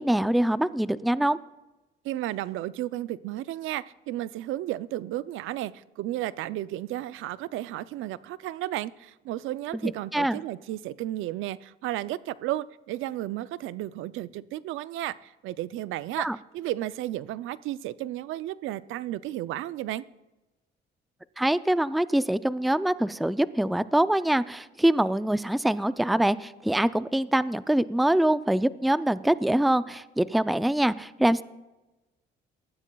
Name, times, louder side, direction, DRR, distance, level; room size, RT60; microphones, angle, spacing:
voice 1, 0.0-1.4 9.8-10.4 16.2-16.4 21.4-31.4, right 1 dB, ahead, 15 dB, 0.4 m, -24 dB
voice 2, 2.0-16.3 16.5-20.1, right 14 dB, 85° right, 17 dB, 0.4 m, -33 dB
19.5 x 14.0 x 2.3 m, 1.1 s
cardioid pair, 90°, 20 cm